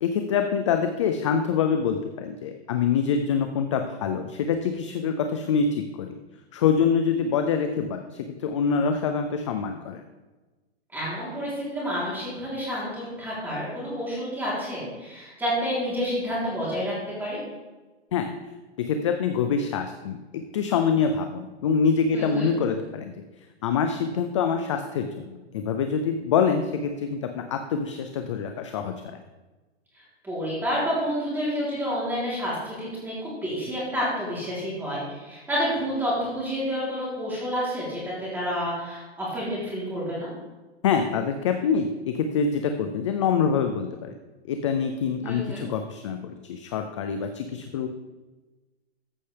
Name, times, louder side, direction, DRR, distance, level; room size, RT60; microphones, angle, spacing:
voice 1, 0.0-6.1 6.5-10.0 18.1-18.3 18.8-23.1 23.6-28.9 40.8-44.1 44.5-47.9, left 6 dB, 30° left, 6 dB, 0.4 m, -25 dB
voice 2, 10.9-17.4 22.1-22.5 29.9-40.3 45.2-45.6, equal, 5° right, -7 dB, 3.3 m, -29 dB
14.0 x 5.7 x 3.3 m, 1.2 s
hypercardioid pair, 155°, 33 cm